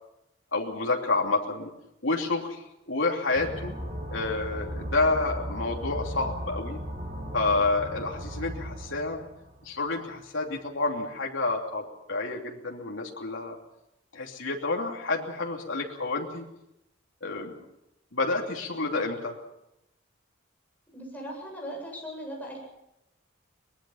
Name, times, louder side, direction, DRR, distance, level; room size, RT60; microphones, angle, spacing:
voice 1, 0.5-1.7 2.0-2.6 2.9-3.7 4.1-6.8 7.3-9.2 9.6-13.6 14.1-16.4 17.2-17.5 18.1-19.4, left 3 dB, 75° left, 0 dB, 2.9 m, -29 dB
sound 1, 3.3-9.9, equal, 40° right, 3.8 m, -37 dB
voice 2, 20.9-22.6, equal, 10° left, -1 dB, 7.6 m, -38 dB
23.5 x 20.5 x 5.7 m, 0.86 s
head